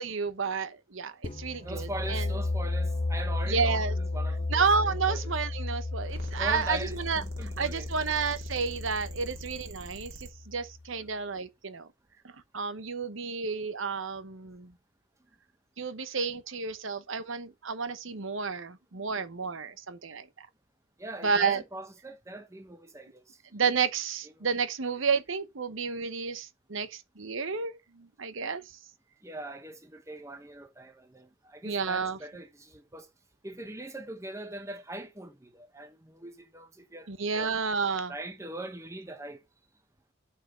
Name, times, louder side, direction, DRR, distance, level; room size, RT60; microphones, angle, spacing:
voice 1, 0.0-2.3 3.5-4.0 4.5-7.2 7.6-11.9 12.5-14.7 15.8-20.5 21.2-21.6 23.5-28.6 31.6-32.2 37.1-38.1, right 5 dB, 70° right, 1.0 m, -31 dB
sound 1, 1.2-10.8, left 2 dB, 25° left, 0.6 m, -33 dB
voice 2, 1.6-5.3 6.4-6.9 7.2-7.9 21.0-23.2 24.4-24.5 29.2-33.1 33.4-37.5 38.1-39.4, right 2 dB, 15° right, 1.0 m, -41 dB
sound 2, 6.0-10.3, right 1 dB, 50° right, 2.7 m, -46 dB
6.0 x 5.6 x 6.8 m
head